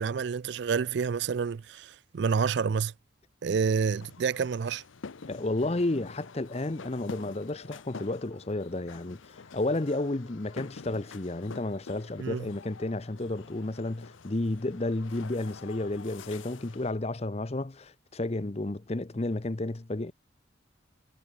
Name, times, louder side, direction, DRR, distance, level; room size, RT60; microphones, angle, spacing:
voice 1, 0.0-2.9 3.4-4.8 12.2-12.4, right 6 dB, 60° right, 0.4 m, -28 dB
sound 1, 3.9-16.9, left 4 dB, 85° left, 0.8 m, -47 dB
voice 2, 5.3-20.1, left 2 dB, 30° left, 0.7 m, -32 dB
head